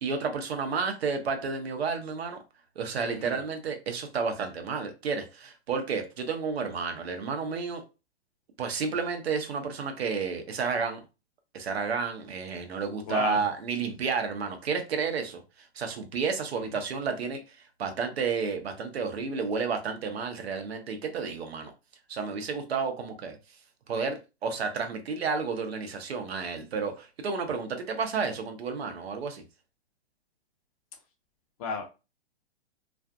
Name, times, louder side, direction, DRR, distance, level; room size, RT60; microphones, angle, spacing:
voice 1, 0.0-2.4 2.8-7.8 8.6-11.0 11.5-21.7 22.1-23.4 23.9-29.4, right 5 dB, 70° right, 0.7 m, -31 dB
voice 2, 3.0-3.4 13.1-13.4 31.6-31.9, left 5 dB, 35° left, 0.6 m, -33 dB
2.5 x 2.3 x 2.4 m
hypercardioid pair, 120°, 33 cm